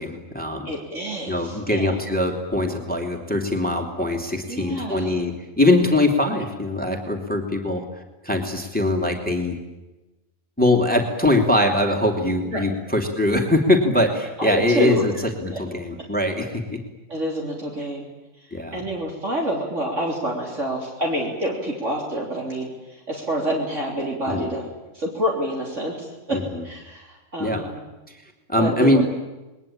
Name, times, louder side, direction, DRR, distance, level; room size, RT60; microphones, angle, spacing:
voice 1, 0.0-0.7 1.3-7.8 8.2-9.6 10.6-15.1 15.4-16.8 18.5-18.8 24.3-24.5 26.3-26.6 27.4-27.6 28.5-29.0, left 1 dB, 5° left, 2 dB, 2.8 m, -22 dB
voice 2, 0.6-2.0 4.5-5.2 12.5-12.7 14.4-15.0 15.5-15.6 17.1-18.1 18.4-24.7 24.9-27.9 28.6-29.0, equal, 60° right, -1 dB, 4.0 m, -27 dB
28.5 x 21.5 x 8.8 m, 1.1 s
omnidirectional pair, 1.4 m